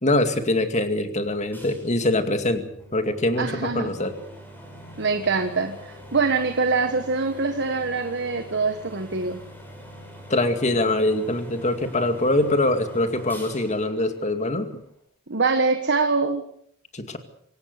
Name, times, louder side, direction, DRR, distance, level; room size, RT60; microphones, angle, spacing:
voice 1, 0.0-2.6 2.9-4.1 10.3-14.8 16.9-17.2, left 2 dB, 35° left, 8 dB, 2.3 m, -23 dB
sound 1, 1.5-15.0, equal, 10° left, 6.3 m, -44 dB
voice 2, 3.4-3.9 5.0-9.4 15.3-16.5, right 4 dB, 55° right, 7 dB, 1.5 m, -24 dB
26.0 x 16.5 x 6.8 m, 0.67 s
head